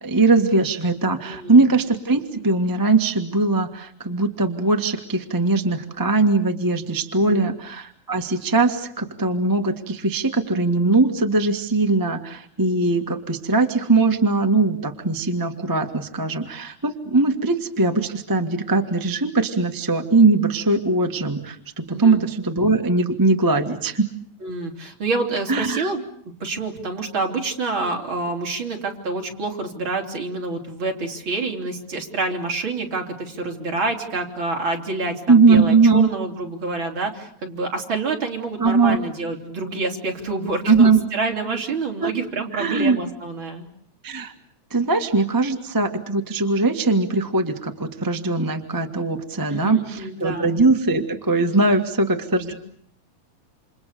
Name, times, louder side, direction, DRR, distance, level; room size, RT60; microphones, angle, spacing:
voice 1, 0.0-24.1 25.5-25.9 35.3-36.1 38.6-39.0 40.7-41.0 42.0-42.1 42.5-43.0 44.0-44.3 44.7-52.5, right 3 dB, 10° right, 5 dB, 1.1 m, -20 dB
voice 2, 1.2-1.6 7.2-7.5 21.9-22.2 24.4-26.0 26.4-43.6 49.5-50.5 52.4-52.5, right 3 dB, 40° right, 2 dB, 4.4 m, -27 dB
29.0 x 27.5 x 6.8 m, 0.62 s
omnidirectional pair, 3.4 m